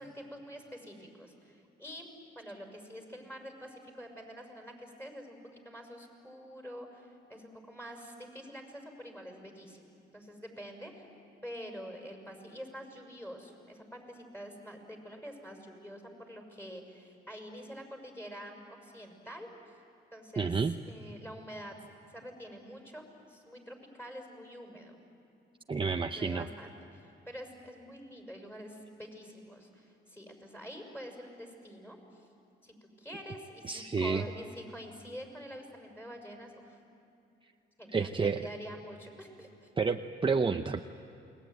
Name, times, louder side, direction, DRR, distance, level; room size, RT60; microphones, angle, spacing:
voice 1, 0.0-2.1 2.3-9.8 10.1-11.1 11.4-19.5 20.1-21.7 22.1-25.0 26.2-32.3 32.6-36.8 37.8-39.7, equal, 10° left, 3 dB, 6.2 m, -46 dB
voice 2, 20.4-20.7 25.7-26.5 33.7-34.2 37.9-38.4 39.8-40.8, right 5 dB, 25° right, 6 dB, 0.8 m, -29 dB
28.5 x 21.5 x 9.3 m, 2.7 s
cardioid pair, 90°, 20 cm